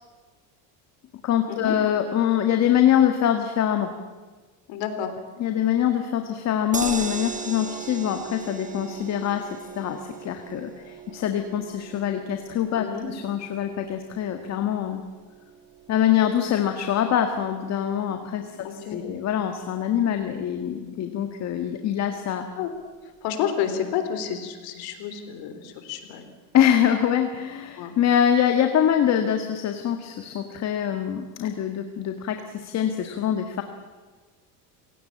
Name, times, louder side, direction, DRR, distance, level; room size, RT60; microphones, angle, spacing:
voice 1, 1.2-3.9 5.4-9.5 9.7-15.0 15.9-22.5 26.5-33.6, left 10 dB, 40° left, 6 dB, 1.8 m, -24 dB
voice 2, 4.7-5.1 12.7-13.1 18.6-19.1 22.6-22.7 23.2-26.3 27.8-27.9, left 8 dB, 65° left, 8 dB, 3.7 m, -30 dB
sound 1, 6.7-19.0 19.3-19.4 19.7-19.8, right 6 dB, 20° right, 1.6 m, -39 dB
27.5 x 17.5 x 8.6 m, 1.3 s
cardioid pair, 140°, 39 cm